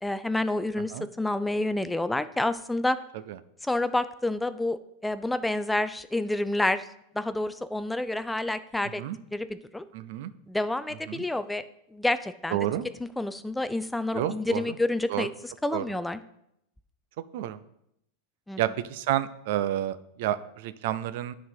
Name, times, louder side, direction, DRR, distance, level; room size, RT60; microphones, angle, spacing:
voice 1, 0.0-0.9 1.2-3.0 3.6-6.8 7.1-9.0 9.3-9.9 10.5-11.6 11.9-12.6 13.2-15.3 15.6-16.2 18.5-18.6, left 2 dB, 5° left, 13 dB, 0.4 m, -28 dB
voice 2, 9.9-10.3 11.1-11.2 12.5-12.8 14.1-14.8 15.1-15.3 15.7-15.8 17.3-17.6 18.6-21.3, right 12 dB, 65° right, 14 dB, 0.5 m, -30 dB
9.3 x 3.9 x 5.7 m, 0.78 s
supercardioid pair, 125°, 0 cm